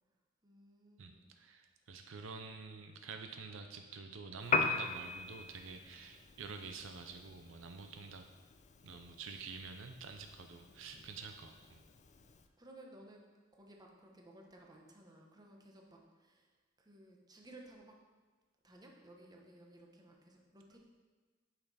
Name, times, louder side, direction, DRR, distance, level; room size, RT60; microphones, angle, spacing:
voice 1, 0.4-1.3 12.6-16.5 16.8-17.9 18.6-20.8, right 1 dB, 20° right, 0 dB, 1.0 m, -57 dB
voice 2, 1.0-8.2 8.8-11.8, right 4 dB, 75° right, 6 dB, 0.6 m, -48 dB
Piano, 4.4-12.5, left 4 dB, 40° left, 0.5 m, -41 dB
8.8 x 5.7 x 4.1 m, 1.3 s
head